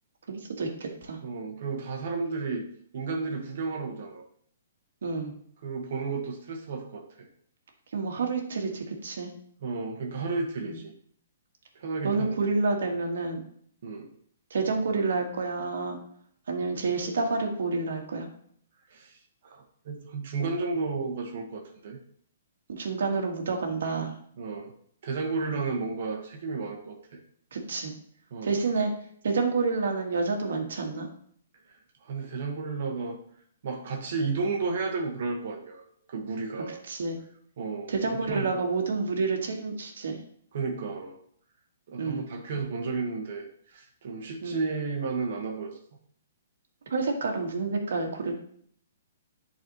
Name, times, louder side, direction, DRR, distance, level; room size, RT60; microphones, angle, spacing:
voice 1, 0.3-1.2 5.0-5.3 7.9-9.3 10.6-10.8 12.0-13.4 14.5-16.0 16.5-18.3 22.7-24.1 25.5-25.7 27.5-27.9 28.4-28.9 29.2-31.1 36.9-37.2 37.9-40.2 42.0-42.3 44.4-44.6 46.9-48.3, right 4 dB, 75° right, 2 dB, 1.5 m, -29 dB
voice 2, 1.2-2.7 2.9-4.3 5.6-7.3 9.6-10.9 11.7-12.3 13.8-14.1 18.9-22.0 24.4-24.7 25.0-27.2 28.3-28.6 32.0-33.2 33.6-36.8 37.6-38.5 40.5-41.2 41.9-45.8, right 4 dB, 60° right, 2 dB, 1.3 m, -33 dB
10.5 x 4.1 x 3.0 m, 0.62 s
hypercardioid pair, 150°, 0 cm